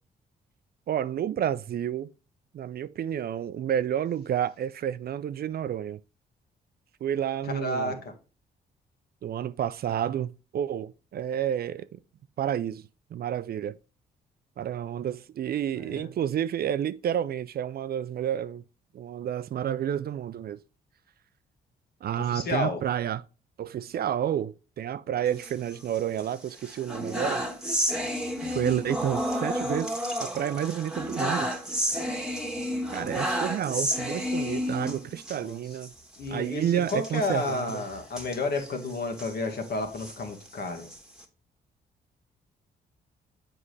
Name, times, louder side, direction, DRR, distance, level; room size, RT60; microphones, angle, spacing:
voice 1, 0.9-2.1 2.5-6.0 7.0-8.0 9.2-11.9 12.4-12.8 13.1-13.8 14.6-18.6 18.9-20.6 22.0-23.2 23.6-27.5 28.4-31.5 32.9-35.9 36.3-37.8, right 10 dB, 55° right, 0.4 m, -30 dB
voice 2, 7.4-8.1 15.7-16.1 22.2-22.8 35.3-35.6 36.2-40.9, left 2 dB, 55° left, 1.7 m, -31 dB
sound 1, 25.3-26.2 26.6-35.4 35.7-35.9 36.1-36.3 36.8-39.3 39.8-41.2, equal, 5° right, 1.7 m, -31 dB
7.5 x 4.9 x 3.2 m
supercardioid pair, 50°, 19 cm